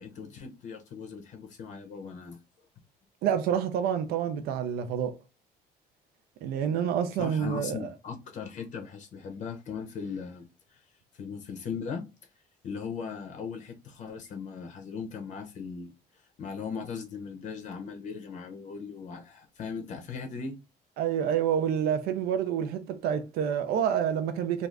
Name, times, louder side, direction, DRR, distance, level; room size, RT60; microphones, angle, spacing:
voice 1, 0.0-2.4 7.2-10.9 11.1-12.0 12.6-20.6, left 6 dB, 50° left, 0.6 m, -38 dB
voice 2, 3.2-5.1 6.4-7.8 21.0-24.7, right 8 dB, 70° right, 0.5 m, -28 dB
2.5 x 2.4 x 3.1 m
cardioid pair, 160°, 16 cm